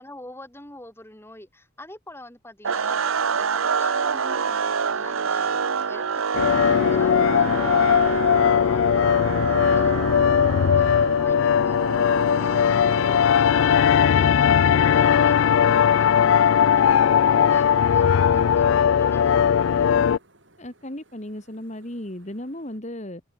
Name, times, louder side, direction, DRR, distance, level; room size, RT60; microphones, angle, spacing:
voice 1, 0.0-3.0 3.3-12.7 13.0-20.0, left 1 dB, 10° left, 5.0 m, -45 dB
g-sharp-powerchord, 2.6-16.7, right 6 dB, 85° right, 0.8 m, -28 dB
sound 1, 6.3-20.2, left 8 dB, 75° left, 0.3 m, -19 dB
sound 2, 16.6-22.8, right 2 dB, 60° right, 7.8 m, -60 dB
voice 2, 20.6-23.2, left 1 dB, 35° left, 2.5 m, -35 dB
head